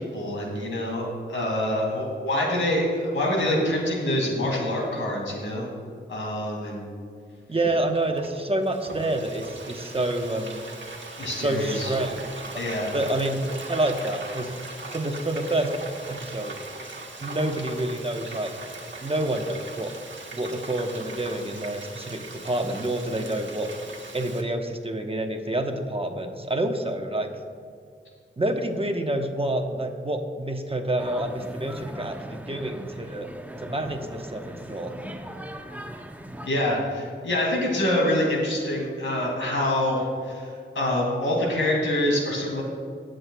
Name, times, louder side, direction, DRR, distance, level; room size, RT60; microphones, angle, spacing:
voice 1, 0.0-5.7 6.1-6.9 11.2-11.9 12.6-12.9 36.4-42.6, left 1 dB, 90° left, -2 dB, 2.2 m, -26 dB
voice 2, 7.5-10.6 11.4-12.2 12.5-12.6 12.9-13.4 13.7-14.5 14.9-15.7 16.1-16.6 17.2-18.5 19.0-19.9 20.3-23.7 24.1-27.3 28.4-33.3 33.6-34.9, right 1 dB, 30° right, 4 dB, 1.0 m, -28 dB
Frying (food), 7.7-24.4, right 3 dB, 70° right, 1.3 m, -40 dB
sound 1, 31.0-36.5, right 1 dB, 10° right, 0.7 m, -39 dB
19.0 x 7.7 x 2.3 m, 2.2 s
cardioid pair, 50°, 20 cm